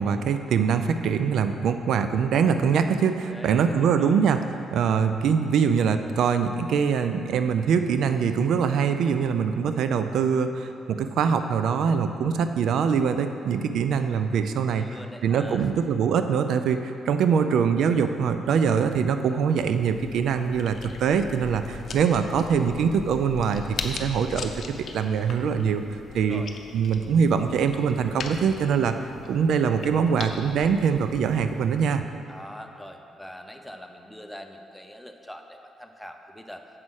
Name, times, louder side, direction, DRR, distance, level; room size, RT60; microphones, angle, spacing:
voice 1, 0.0-4.4 4.7-14.9 15.2-24.5 24.9-26.4 26.7-28.9 29.3-32.0, right 6 dB, 75° right, 9 dB, 0.4 m, -23 dB
voice 2, 3.3-4.2 14.7-15.7 26.1-26.5 32.3-36.6, equal, 5° left, 5 dB, 0.7 m, -43 dB
sound 1, 19.7-31.8, left 5 dB, 55° left, 0.7 m, -40 dB
7.5 x 5.3 x 6.3 m, 2.6 s
cardioid pair, 90°, 0 cm